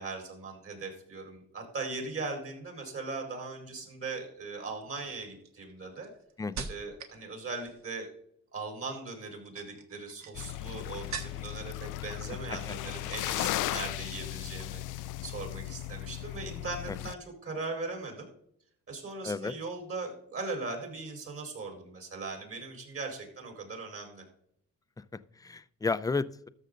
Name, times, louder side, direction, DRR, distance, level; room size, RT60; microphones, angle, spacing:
voice 1, 0.0-6.1 6.7-8.1 8.5-18.3 18.9-24.2, right 3 dB, 50° right, 2 dB, 4.6 m, -39 dB
sound 1, 3.7-4.1 4.8-7.2 7.5-8.0 9.2-11.7 12.0-12.6 12.9-13.2, right 6 dB, 65° right, 1.6 m, -44 dB
sound 2, 10.3-17.1, left 15 dB, 85° left, 0.5 m, -36 dB
voice 2, 19.2-19.5 25.1-26.5, left 4 dB, 10° left, 15 dB, 0.5 m, -33 dB
13.0 x 6.6 x 3.9 m, 0.66 s
cardioid pair, 90°, 30 cm